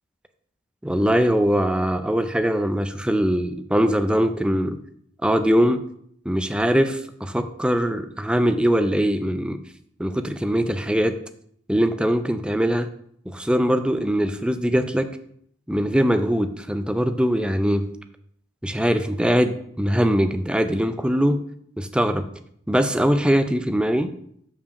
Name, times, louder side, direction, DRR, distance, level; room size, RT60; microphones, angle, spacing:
voice 1, 0.8-4.8 5.2-5.8 6.3-9.6 10.0-11.1 11.7-12.9 13.3-15.1 15.7-17.9 18.6-21.4 21.8-22.3 22.7-24.1, equal, 5° right, 9 dB, 0.4 m, -21 dB
5.6 x 4.7 x 6.4 m, 0.67 s
head